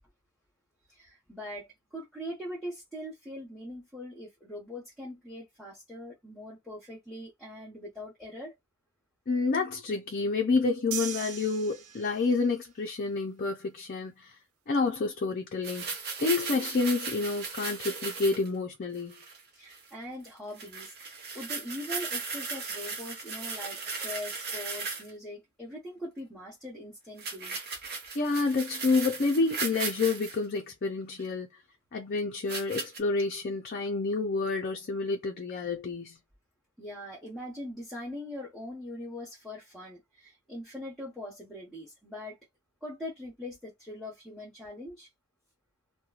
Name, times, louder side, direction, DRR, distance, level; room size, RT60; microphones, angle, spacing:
voice 1, 0.9-8.5 19.5-20.9 21.3-27.6 36.8-42.4 42.8-45.1, left 1 dB, ahead, 0.9 m, -41 dB
voice 2, 9.3-14.3 14.7-15.9 16.2-19.1 28.1-31.5 31.9-36.2, left 3 dB, 45° left, 0.4 m, -29 dB
sound 1, 10.9-12.5, right 9 dB, 85° right, 0.5 m, -38 dB
sound 2, 15.6-18.5 19.0-19.4 19.7-19.9 20.2-20.3 20.6-25.1 27.2-30.4 31.2-31.3 32.5-33.0, right 4 dB, 50° right, 0.7 m, -37 dB
2.9 x 2.1 x 2.4 m
head